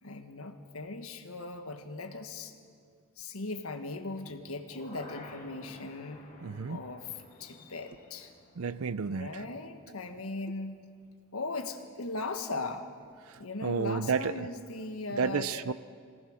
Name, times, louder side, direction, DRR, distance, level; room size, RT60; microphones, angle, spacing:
voice 1, 0.0-2.5 3.2-6.2 6.7-8.3 9.1-10.9 11.3-12.9 13.4-15.7, left 3 dB, 75° left, 1.5 m, -38 dB
sound 1, 4.1-10.2 10.5-10.6, left 1 dB, 35° left, 2.6 m, -53 dB
voice 2, 6.4-6.8 8.6-9.3 13.3-14.5 15.1-15.7, right 5 dB, 75° right, 0.5 m, -31 dB
23.0 x 18.5 x 6.5 m
head